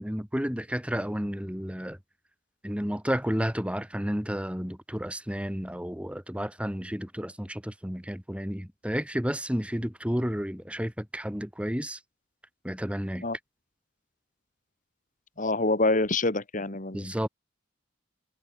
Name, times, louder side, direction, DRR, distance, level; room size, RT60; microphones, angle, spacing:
voice 1, 0.0-2.0 2.6-12.0 12.6-13.2 16.9-17.3, equal, 5° right, 2.4 m, -31 dB
voice 2, 15.4-17.3, left 2 dB, 40° left, 2.3 m, -26 dB
head